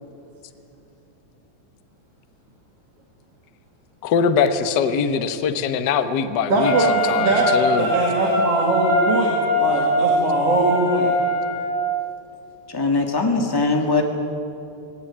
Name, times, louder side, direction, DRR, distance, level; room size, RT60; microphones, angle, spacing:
voice 1, 4.0-7.9, left 6 dB, 80° left, 9 dB, 0.9 m, -22 dB
voice 2, 6.5-11.1, right 2 dB, 50° right, -2 dB, 3.1 m, -21 dB
Wind instrument woodwind instrument, 6.6-11.8, left 1 dB, 30° left, 6.6 m, -22 dB
voice 3, 12.7-14.0, left 3 dB, 10° left, 3 dB, 1.3 m, -20 dB
19.5 x 17.5 x 9.9 m, 2.8 s
omnidirectional pair, 3.5 m